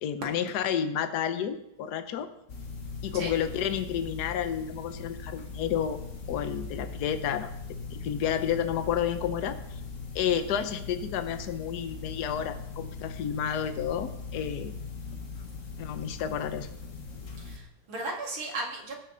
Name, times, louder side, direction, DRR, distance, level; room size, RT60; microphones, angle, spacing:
voice 1, 0.0-2.3 3.0-6.0 6.3-7.5 7.9-9.8 10.1-14.7 15.8-16.7, left 9 dB, 60° left, 9 dB, 1.3 m, -30 dB
sound 1, 2.5-17.6, left 4 dB, 45° left, 1.4 m, -40 dB
voice 2, 17.4-19.0, right 2 dB, 75° right, -1 dB, 3.0 m, -36 dB
19.0 x 6.7 x 3.9 m, 0.79 s
omnidirectional pair, 2.2 m